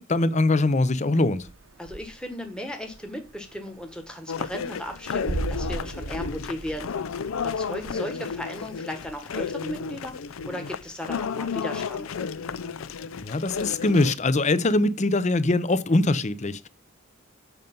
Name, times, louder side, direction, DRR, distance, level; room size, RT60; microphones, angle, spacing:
voice 1, 0.0-1.5 13.2-16.7, left 2 dB, 35° left, 0.6 m, -22 dB
sound 1, 1.4-2.5 2.7-7.9, right 2 dB, 80° right, 0.8 m, -35 dB
voice 2, 1.8-6.9 7.4-10.1 10.4-12.1, equal, 5° left, 1.4 m, -36 dB
sound 2, 4.3-14.1, left 6 dB, 85° left, 0.5 m, -32 dB
8.1 x 5.3 x 5.4 m
head